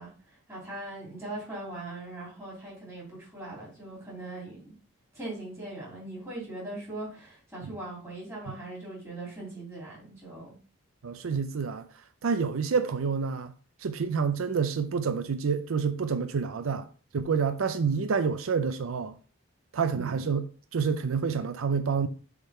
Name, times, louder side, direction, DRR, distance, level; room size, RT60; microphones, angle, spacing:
voice 1, 0.0-4.7 5.1-10.5, right 2 dB, 15° right, 3.1 m, -40 dB
voice 2, 11.0-11.8 12.2-13.5 13.8-16.9 17.1-19.1 19.7-22.1, right 5 dB, 80° right, 0.5 m, -28 dB
7.0 x 3.7 x 4.2 m
head